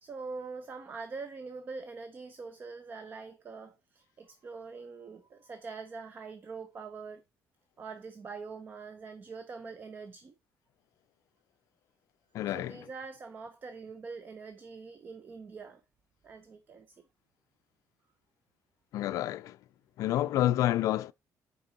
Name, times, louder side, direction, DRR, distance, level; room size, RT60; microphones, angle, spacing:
voice 1, 0.0-7.2 7.8-10.3 12.5-15.8 16.2-17.0, right 4 dB, 35° right, 0.7 m, -44 dB
voice 2, 12.3-12.9 18.9-19.6 20.0-21.1, left 13 dB, 70° left, 0.4 m, -29 dB
7.9 x 5.2 x 3.9 m
cardioid pair, 145°, 6 cm